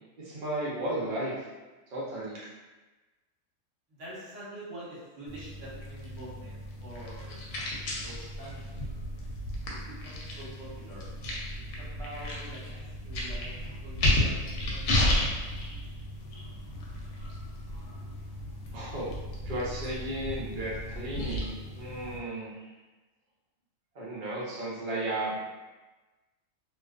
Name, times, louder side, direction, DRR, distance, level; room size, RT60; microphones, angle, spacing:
voice 1, 0.2-1.4 1.9-2.4 18.7-19.1 19.4-22.7 23.9-25.4, right 1 dB, 50° right, -7 dB, 0.7 m, -34 dB
voice 2, 3.9-7.4 8.0-8.9 9.7-11.0 11.8-13.5 13.8-15.3, right 1 dB, 65° right, -8 dB, 1.2 m, -46 dB
sound 1, 5.3-22.2, left 1 dB, 75° left, 0.9 m, -33 dB
2.4 x 2.2 x 2.3 m, 1.2 s
omnidirectional pair, 1.4 m